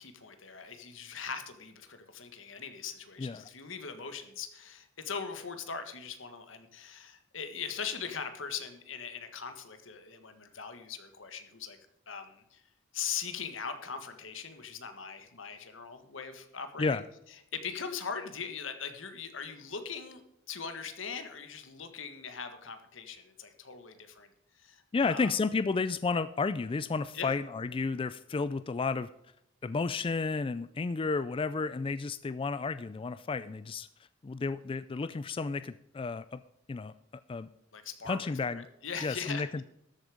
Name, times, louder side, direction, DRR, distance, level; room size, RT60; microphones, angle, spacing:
voice 1, 0.0-11.8 12.1-12.6 12.9-17.0 17.5-20.2 20.5-24.3 24.6-25.3 27.1-27.3 37.7-39.6, left 6 dB, 80° left, 8 dB, 1.7 m, -40 dB
voice 2, 24.9-29.1 29.6-33.9 34.2-36.4 36.7-36.9 37.3-37.5 38.1-38.7 39.0-39.6, left 4 dB, 25° left, 14 dB, 0.3 m, -32 dB
13.0 x 8.3 x 5.1 m, 0.80 s
head